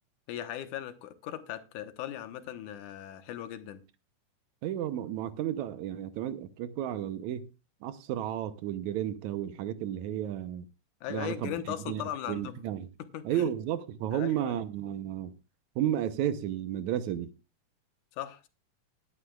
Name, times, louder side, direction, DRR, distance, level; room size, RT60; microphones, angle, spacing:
voice 1, 0.3-3.8 11.0-12.6 13.0-13.5 14.1-14.6 18.2-18.5, left 11 dB, 85° left, 2.5 m, -38 dB
voice 2, 4.6-7.5 7.8-10.7 11.1-11.5 11.9-12.0 12.3-12.9 13.2-15.3 15.8-17.3, right 11 dB, 75° right, 2.0 m, -32 dB
19.5 x 9.9 x 2.3 m
omnidirectional pair, 3.5 m